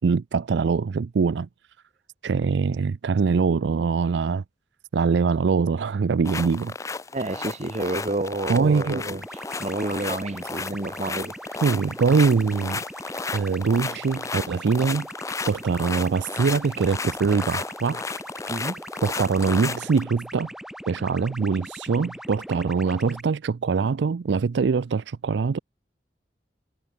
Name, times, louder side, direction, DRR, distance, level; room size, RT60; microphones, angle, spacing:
voice 1, 0.0-1.5 2.2-4.4 4.9-6.7 8.5-9.0 11.6-12.8 13.3-15.1 15.5-18.0 19.0-20.5 20.9-25.6, right 5 dB, 80° right, 0.4 m, -23 dB
sound 1, 6.2-20.0, left 4 dB, 15° left, 0.4 m, -33 dB
voice 2, 7.1-11.3 18.5-18.8, right 2 dB, 40° right, 1.0 m, -29 dB
sound 2, 9.2-23.2, equal, 5° right, 0.9 m, -40 dB
head